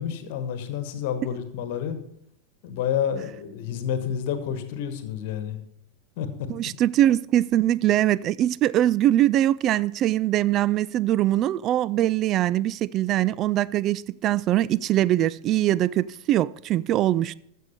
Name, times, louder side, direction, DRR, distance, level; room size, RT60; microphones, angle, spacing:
voice 1, 0.0-2.0 2.6-5.6 6.2-6.5, left 8 dB, 50° left, 1.3 m, -29 dB
voice 2, 6.5-17.3, right 13 dB, 35° right, 0.3 m, -22 dB
14.5 x 6.4 x 5.3 m
figure-of-eight pair, 90°, 0 cm